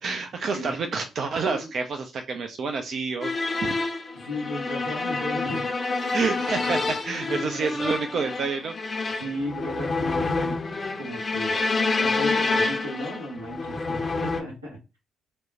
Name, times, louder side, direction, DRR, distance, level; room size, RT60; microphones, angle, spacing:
voice 1, 0.0-3.8 6.1-8.7, right 4 dB, 50° right, 5 dB, 0.3 m, -29 dB
sound 1, 3.2-14.4, left 3 dB, 35° left, 0.5 m, -28 dB
voice 2, 4.1-5.8 6.8-6.9 7.2-7.7 9.1-10.6 11.0-11.6 12.0-14.8, left 1 dB, 90° right, -4 dB, 0.9 m, -35 dB
2.9 x 2.0 x 2.7 m, 0.27 s
figure-of-eight pair, 40°, 0 cm